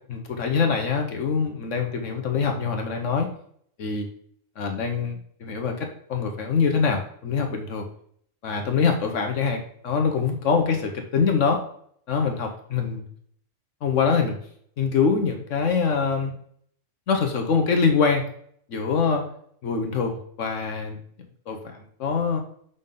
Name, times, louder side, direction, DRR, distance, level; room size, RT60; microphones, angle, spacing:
voice 1, 0.1-3.3 3.8-4.1 4.6-7.8 8.4-11.6 12.1-13.1 13.8-14.4 14.8-16.3 17.1-18.2 18.7-19.2 19.6-21.0 21.5-22.4, left 5 dB, 75° left, 3 dB, 1.2 m, -24 dB
6.5 x 5.5 x 3.7 m, 0.63 s
omnidirectional pair, 1.3 m